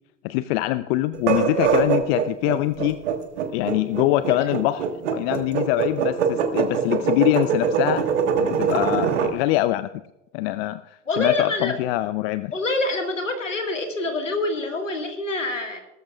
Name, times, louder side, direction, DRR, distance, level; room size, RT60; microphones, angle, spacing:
voice 1, 0.2-3.0 3.5-4.9 5.1-8.1 8.4-9.9 10.3-12.5, left 16 dB, 55° left, 14 dB, 0.6 m, -23 dB
sound 1, 1.1-9.3, right 7 dB, 70° right, 1.5 m, -23 dB
voice 2, 11.1-11.7 12.5-15.8, left 2 dB, 85° left, 5 dB, 1.8 m, -26 dB
19.0 x 13.5 x 2.4 m, 0.94 s
figure-of-eight pair, 65°, 37 cm